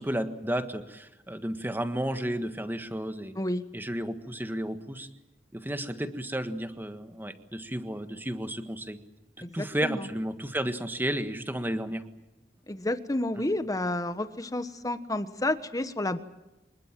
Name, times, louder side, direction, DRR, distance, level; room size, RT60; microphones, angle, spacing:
voice 1, 0.0-3.3 3.7-5.1 5.5-9.0 9.5-12.1 13.4-13.5, right 1 dB, 10° right, 8 dB, 1.6 m, -32 dB
voice 2, 9.4-10.0 12.7-16.2, left 1 dB, 20° left, 11 dB, 1.3 m, -30 dB
25.0 x 21.0 x 7.6 m, 0.97 s
head